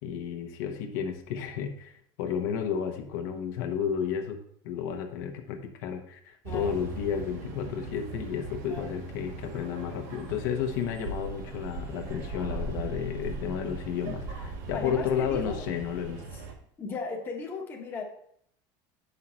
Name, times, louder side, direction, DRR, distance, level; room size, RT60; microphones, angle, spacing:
voice 1, 0.0-16.2, left 7 dB, 75° left, 4 dB, 1.1 m, -32 dB
voice 2, 6.4-6.8 8.7-9.0 14.7-15.6 16.3-16.4 16.8-18.0, left 4 dB, 20° left, -1 dB, 1.1 m, -37 dB
sound 1, 6.5-16.5, right 3 dB, 70° right, 1.4 m, -39 dB
7.5 x 5.6 x 4.3 m, 0.68 s
cardioid pair, 175°, 11 cm